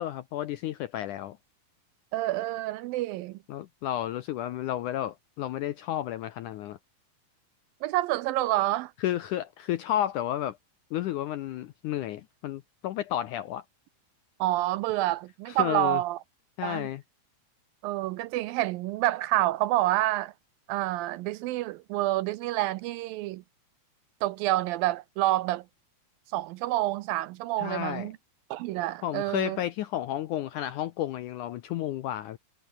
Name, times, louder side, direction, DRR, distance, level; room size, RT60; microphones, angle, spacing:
voice 1, 0.0-1.4 3.5-6.8 9.0-10.6 10.9-13.6 15.5-16.0 16.6-17.0 27.6-28.1 29.0-32.4, left 12 dB, 80° left, 1.9 m, -32 dB
voice 2, 2.1-3.4 7.8-8.9 14.4-16.2 16.6-16.9 17.8-20.3 20.7-23.4 24.2-25.6 26.3-28.1 28.5-29.6, right 16 dB, 80° right, 2.2 m, -28 dB
omnidirectional pair, 4.5 m